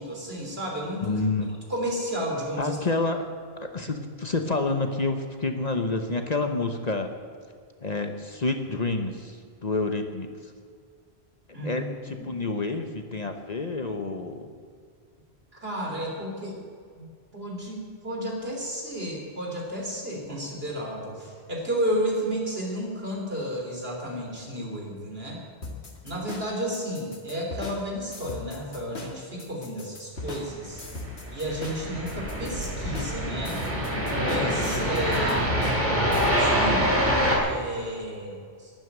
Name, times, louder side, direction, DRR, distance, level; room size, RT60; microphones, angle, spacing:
voice 1, 0.0-1.2 1.7-2.8 11.5-12.3 15.5-16.6 17.0-25.4 26.0-30.9 31.3-33.6 34.2-35.4 36.4-38.7, equal, 65° right, -1 dB, 3.6 m, -32 dB
voice 2, 1.0-1.5 2.6-3.2 3.6-7.1 7.8-10.5 11.6-14.5, left 3 dB, 40° left, 6 dB, 1.1 m, -28 dB
sound 1, 25.6-36.3, left 2 dB, 80° left, 2.1 m, -40 dB
sound 2, 30.7-37.4, equal, 45° right, 3.0 m, -25 dB
12.0 x 11.0 x 9.0 m, 2.1 s
omnidirectional pair, 1.1 m